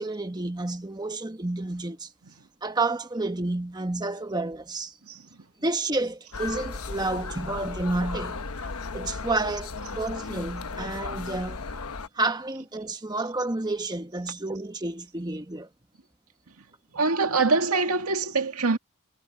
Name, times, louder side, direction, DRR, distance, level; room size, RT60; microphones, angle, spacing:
voice 1, 0.0-2.1 2.6-4.9 5.6-8.4 8.9-11.6 12.1-15.7, right 2 dB, 20° right, 1.2 m, -30 dB
sound 1, 6.3-12.1, left 4 dB, 75° left, 1.1 m, -35 dB
voice 2, 16.9-18.8, right 3 dB, 80° right, 2.0 m, -24 dB
head